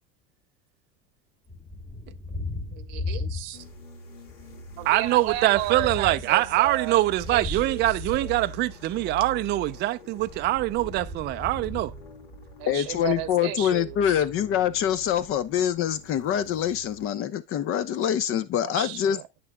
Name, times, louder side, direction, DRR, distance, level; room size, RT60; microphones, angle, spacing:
Thunder, 1.5-3.9 4.2-9.0 10.1-12.7, left 2 dB, 15° left, 1.4 m, -37 dB
voice 1, 2.7-3.6 4.8-7.0 7.3-8.3 12.6-14.2 18.8-19.4, right 15 dB, 65° right, 0.9 m, -34 dB
sound 1, 3.5-17.2, left 2 dB, 75° left, 3.1 m, -45 dB
voice 2, 4.9-11.9, right 16 dB, 35° right, 0.4 m, -24 dB
voice 3, 12.7-19.2, left 10 dB, 45° left, 1.0 m, -25 dB
9.5 x 6.5 x 2.3 m
supercardioid pair, 120°, 31 cm